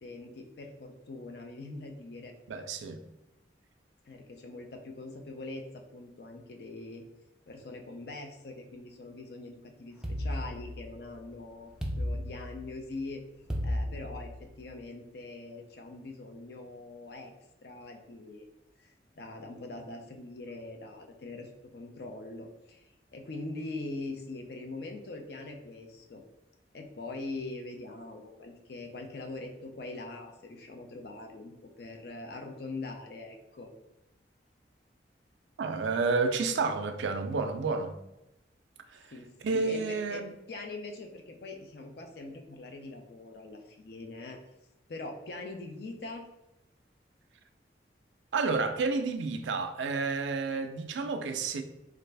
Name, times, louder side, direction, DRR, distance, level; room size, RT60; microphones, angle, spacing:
voice 1, 0.0-2.3 4.0-7.0 7.5-13.2 13.6-17.3 17.6-18.5 18.8-26.2 26.7-33.7 39.1-40.2 40.5-44.4 44.9-46.2, left 2 dB, 60° left, 0.4 m, -42 dB
voice 2, 2.5-3.0 35.6-37.9 38.9-39.0 39.4-40.3 48.3-51.6, right 4 dB, 90° right, 0.4 m, -30 dB
sound 1, 10.0-11.1 11.8-12.9 13.5-14.6, equal, 5° right, 0.3 m, -34 dB
3.3 x 2.4 x 3.3 m
head